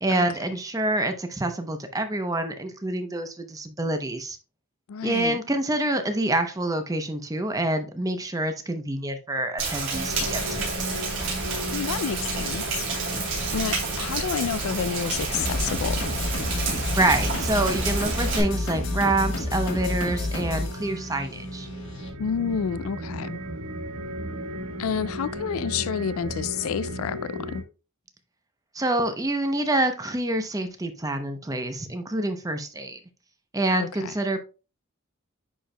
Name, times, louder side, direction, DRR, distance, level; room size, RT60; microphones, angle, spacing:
voice 1, 0.0-4.4 5.0-10.7 17.0-21.7 28.7-33.0 33.5-34.4, right 2 dB, 15° right, 0.7 m, -27 dB
voice 2, 4.9-5.4 11.7-12.9 13.5-16.1 22.2-23.4 24.8-27.6 33.7-34.1, left 7 dB, 80° left, 0.4 m, -29 dB
Rain, 9.6-18.4, right 4 dB, 60° right, 3.2 m, -30 dB
sound 1, 9.9-27.6, equal, 80° right, 1.0 m, -37 dB
sound 2, 10.0-22.1, left 2 dB, 65° left, 1.5 m, -32 dB
10.0 x 4.5 x 2.2 m
head